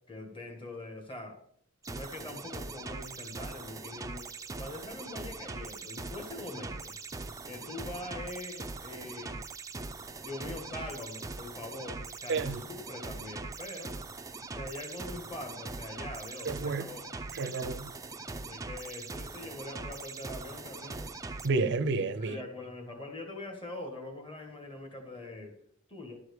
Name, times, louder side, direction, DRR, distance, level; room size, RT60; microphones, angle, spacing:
voice 1, 0.1-1.4 1.9-4.3 4.6-6.9 7.4-9.4 10.2-13.9 14.5-17.0 18.3-21.1 22.2-25.6 25.9-26.2, left 2 dB, 25° left, 2.0 m, -43 dB
sound 1, 1.8-21.5, right 3 dB, 15° right, 0.5 m, -41 dB
voice 2, 12.3-12.6 16.4-16.9 17.3-17.9 21.4-22.4, right 3 dB, 60° right, 0.6 m, -30 dB
12.0 x 4.8 x 6.6 m
head